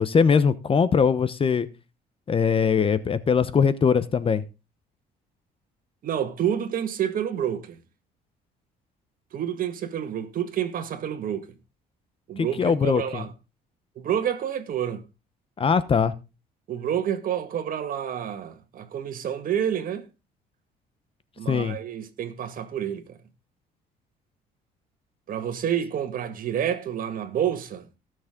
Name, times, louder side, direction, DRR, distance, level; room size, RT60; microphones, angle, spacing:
voice 1, 0.0-1.7 2.3-4.4 12.4-13.2 15.6-16.1 21.5-21.8, left 6 dB, 35° left, 1.0 m, -21 dB
voice 2, 6.0-7.8 9.3-11.5 12.3-13.3 14.0-15.0 16.7-20.1 21.4-23.2 25.3-27.9, right 9 dB, 55° right, 1.9 m, -28 dB
18.0 x 6.4 x 3.8 m
cardioid pair, 110°, 17 cm